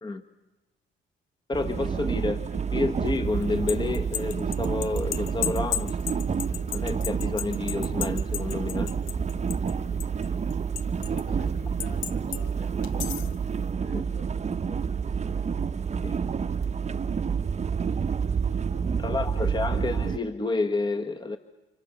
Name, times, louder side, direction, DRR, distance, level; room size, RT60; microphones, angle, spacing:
voice 1, 1.5-2.5 2.7-6.0 6.7-8.9 13.9-14.0 16.0-16.1 19.0-21.4, left 3 dB, 20° left, 7 dB, 1.5 m, -29 dB
sound 1, 1.5-20.2, right 6 dB, 35° right, 1.0 m, -29 dB
sound 2, 3.4-9.7 10.0-11.2 11.8-12.4 12.8-13.4, left 12 dB, 90° left, 1.1 m, -34 dB
voice 2, 9.6-10.6 11.0-16.5 17.6-19.9, left 4 dB, 55° left, 6 dB, 5.5 m, -51 dB
30.0 x 28.5 x 7.0 m, 1.1 s
cardioid pair, 90°, 20 cm